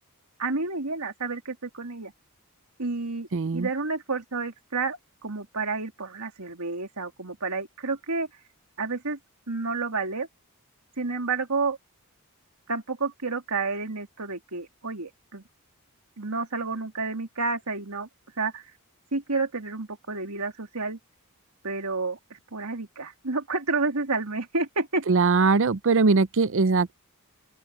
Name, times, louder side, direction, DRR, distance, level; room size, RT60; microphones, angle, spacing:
voice 1, 0.4-2.1 2.8-3.3 3.5-8.3 8.8-9.2 9.5-10.3 11.0-11.8 12.7-15.4 16.2-18.1 18.4-18.6 19.1-21.0 21.6-25.0, right 3 dB, 85° right, 2.9 m, -30 dB
voice 2, 3.3-3.7 25.1-26.9, right 4 dB, 60° right, 0.6 m, -21 dB
open air
head